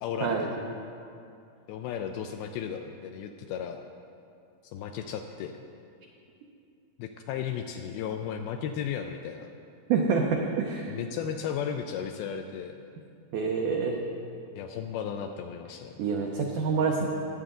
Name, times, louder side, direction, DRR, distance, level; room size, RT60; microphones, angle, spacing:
voice 1, 0.0-0.5 1.7-3.8 4.7-5.6 7.0-9.5 10.9-12.8 14.6-15.9, left 8 dB, 85° left, 5 dB, 2.2 m, -35 dB
voice 2, 9.9-10.9 13.3-14.0 16.0-17.1, right 5 dB, 85° right, 0 dB, 1.8 m, -27 dB
19.5 x 7.9 x 3.8 m, 2.5 s
omnidirectional pair, 4.7 m